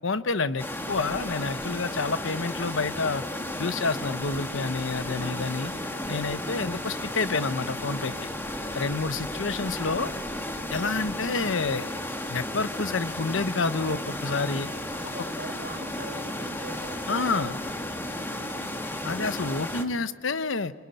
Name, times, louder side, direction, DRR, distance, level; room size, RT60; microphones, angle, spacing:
voice 1, 0.0-3.2 3.6-5.7 6.1-8.1 8.7-10.1 10.7-12.0 12.3-14.7 17.1-17.6 19.0-20.7, left 4 dB, 75° left, 13 dB, 1.0 m, -28 dB
sound 1, 0.6-19.8, left 1 dB, 10° left, 1.8 m, -34 dB
voice 2, 5.2-5.9 8.8-9.7 15.0-18.7, right 1 dB, 60° right, 5 dB, 4.5 m, -43 dB
25.5 x 23.0 x 9.2 m, 1.4 s
head